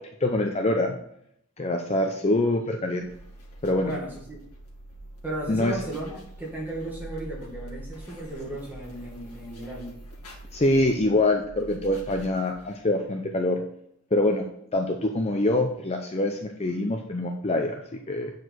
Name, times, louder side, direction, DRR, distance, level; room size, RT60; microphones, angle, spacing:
voice 1, 0.2-1.0 1.6-3.1 3.6-3.9 5.5-5.8 10.5-13.6 14.1-14.5 14.7-18.3, left 2 dB, 30° left, 4 dB, 0.5 m, -25 dB
sound 1, 3.0-12.9, right 1 dB, 90° left, 1.9 m, -45 dB
voice 2, 3.8-4.4 5.2-10.0, right 1 dB, 10° right, -4 dB, 1.8 m, -35 dB
8.1 x 4.7 x 4.5 m, 0.73 s
head